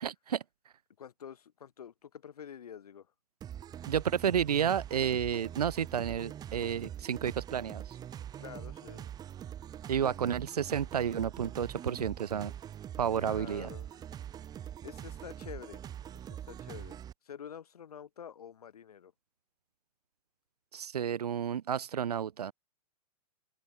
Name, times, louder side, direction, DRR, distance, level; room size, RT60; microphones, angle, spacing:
voice 1, 0.0-0.4 3.9-8.0 9.9-12.5 13.0-13.7 20.7-22.5, right 8 dB, 85° right, 0.7 m, -31 dB
voice 2, 1.0-3.1 8.4-9.1 10.0-10.1 13.2-14.0 14.8-17.0 17.2-19.1, left 8 dB, 75° left, 4.9 m, -48 dB
sound 1, 3.4-17.1, right 10 dB, 20° right, 0.8 m, -44 dB
open air
hypercardioid pair, 120°, 19 cm